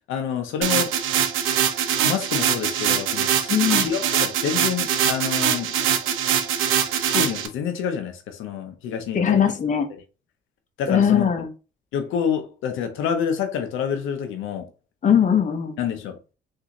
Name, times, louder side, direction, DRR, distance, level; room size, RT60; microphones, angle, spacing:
voice 1, 0.1-1.0 2.0-3.5 3.7-5.7 7.0-9.5 10.8-11.3 11.9-14.7 15.8-16.3, left 8 dB, 85° left, 0.7 m, -27 dB
sound 1, 0.6-7.5, right 9 dB, 85° right, 0.6 m, -23 dB
voice 2, 3.5-3.9 9.1-9.9 10.9-11.5 15.0-15.8, left 8 dB, 40° left, 0.8 m, -20 dB
3.7 x 2.7 x 2.9 m
cardioid pair, 90°, 20 cm